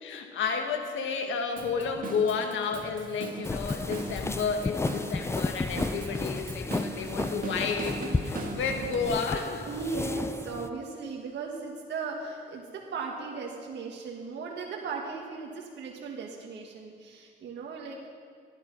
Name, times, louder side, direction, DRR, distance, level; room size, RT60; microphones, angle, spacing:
voice 1, 0.0-9.7, left 5 dB, 80° left, 5 dB, 1.7 m, -31 dB
Drum kit / Drum, 1.6-9.1, right 3 dB, 45° right, 1.8 m, -39 dB
sound 1, 3.4-10.7, left 3 dB, 15° left, 0.4 m, -33 dB
voice 2, 9.7-18.1, right 4 dB, 60° right, -1 dB, 1.7 m, -37 dB
17.5 x 11.5 x 5.4 m, 2.2 s
cardioid pair, 90°, 20 cm